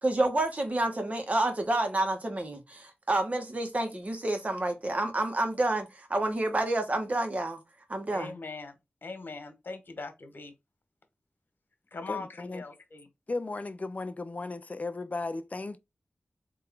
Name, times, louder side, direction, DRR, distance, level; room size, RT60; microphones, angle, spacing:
voice 1, 0.0-7.6 7.9-8.3, right 2 dB, 40° right, 1.4 m, -29 dB
voice 2, 8.1-10.5 11.9-13.1, left 3 dB, 70° left, 1.3 m, -41 dB
voice 3, 12.1-12.6 13.3-15.8, left 3 dB, 45° left, 0.6 m, -35 dB
3.7 x 3.0 x 4.6 m
wide cardioid pair, 70°, 4 cm